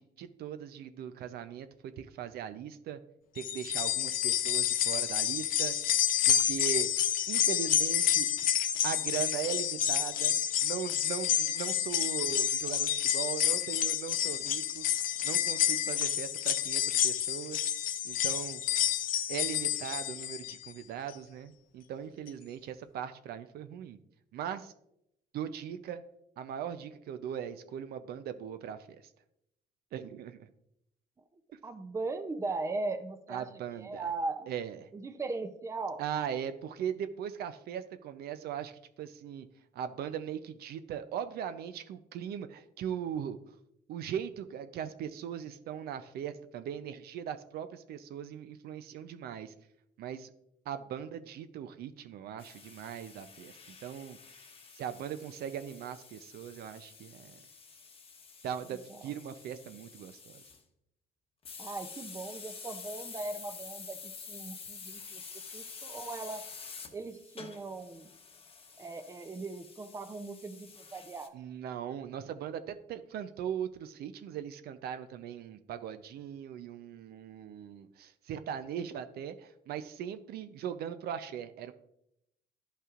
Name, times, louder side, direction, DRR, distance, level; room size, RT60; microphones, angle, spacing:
voice 1, 0.0-3.0 3.3-5.8 6.3-6.9 7.3-8.3 8.8-17.7 18.0-18.6 19.3-24.0 24.3-24.7 25.3-26.0 26.4-29.0 29.9-30.5 31.5-31.6 33.3-34.0 34.5-34.8 36.0-39.5 39.7-43.4 43.9-49.5 50.0-50.3 50.7-53.5 53.8-54.5 54.7-57.4 58.4-60.4 71.3-81.7, right 9 dB, 65° right, 11 dB, 0.5 m, -39 dB
sound 1, 3.4-20.7 21.1-21.2 22.3-22.4, left 11 dB, 55° left, 0.5 m, -29 dB
voice 2, 31.6-33.5 33.8-34.5 34.9-36.0 58.7-59.0 61.6-65.2 65.5-66.5 66.9-68.1 68.8-71.4, right 3 dB, 15° right, 9 dB, 0.5 m, -38 dB
sound 2, 52.4-60.6 61.5-71.3, left 5 dB, 35° left, 1.0 m, -49 dB
12.0 x 5.5 x 2.5 m, 0.79 s
cardioid pair, 110°, 17 cm